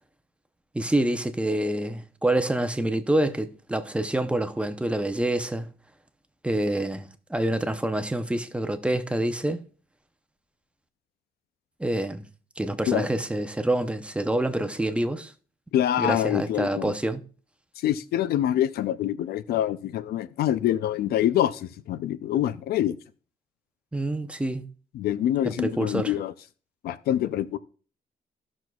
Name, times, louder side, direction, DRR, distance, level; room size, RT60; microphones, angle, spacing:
voice 1, 0.7-5.7 6.4-9.6 11.8-12.2 12.6-15.3 16.0-17.2 23.9-24.7 25.6-26.1, right 1 dB, 5° right, 0.7 m, -27 dB
voice 2, 15.7-16.9 17.8-23.0 24.9-26.3 26.8-27.6, left 11 dB, 85° left, 0.5 m, -25 dB
15.5 x 6.2 x 2.3 m
cardioid pair, 120°, 16 cm